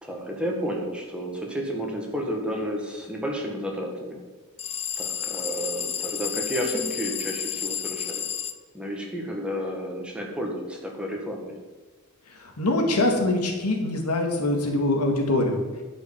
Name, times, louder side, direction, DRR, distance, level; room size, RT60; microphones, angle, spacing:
voice 1, 0.0-4.2 5.0-8.2 8.7-11.6, equal, 5° right, 0 dB, 1.7 m, -31 dB
sound 1, 4.6-8.6, left 9 dB, 30° left, 0.5 m, -31 dB
voice 2, 12.4-15.6, left 2 dB, 85° left, 3 dB, 2.0 m, -24 dB
11.0 x 5.6 x 7.1 m, 1.3 s
head